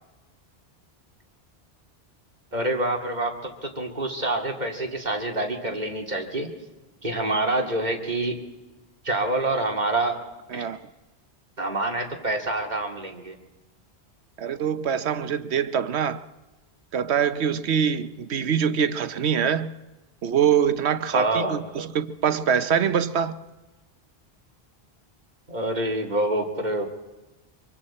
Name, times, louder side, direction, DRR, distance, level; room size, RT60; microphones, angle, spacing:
voice 1, 2.5-6.5 7.0-8.4 9.0-10.2 10.5-10.7 11.6-13.4 21.1-21.6 25.5-26.9, right 2 dB, 45° right, 2.5 m, -26 dB
voice 2, 14.4-16.3 16.9-19.7 20.2-23.3, right 8 dB, 85° right, 1.1 m, -24 dB
25.0 x 24.0 x 4.3 m
omnidirectional pair, 1.1 m